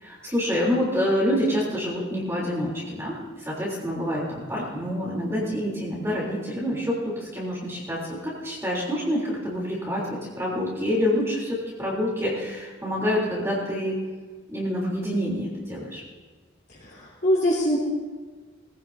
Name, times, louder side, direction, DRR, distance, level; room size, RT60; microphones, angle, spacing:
voice 1, 0.0-14.0 14.5-16.0, equal, 15° right, -5 dB, 3.4 m, -27 dB
voice 2, 16.8-17.8, equal, 55° left, -7 dB, 3.3 m, -23 dB
21.0 x 15.5 x 2.7 m, 1.4 s
head